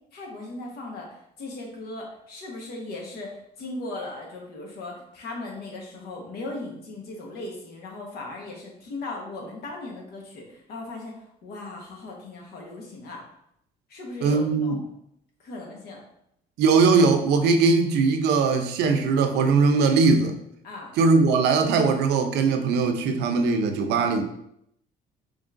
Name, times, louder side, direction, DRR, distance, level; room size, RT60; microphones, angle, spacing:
voice 1, 0.1-11.1 11.4-13.2 13.9-14.8 15.4-16.0 20.6-20.9, left 2 dB, 70° left, 0 dB, 1.2 m, -38 dB
voice 2, 14.2-14.8 16.6-20.4 21.0-24.2, right 4 dB, 80° right, 6 dB, 0.6 m, -20 dB
5.1 x 3.1 x 2.5 m, 0.75 s
cardioid pair, 110°, 17 cm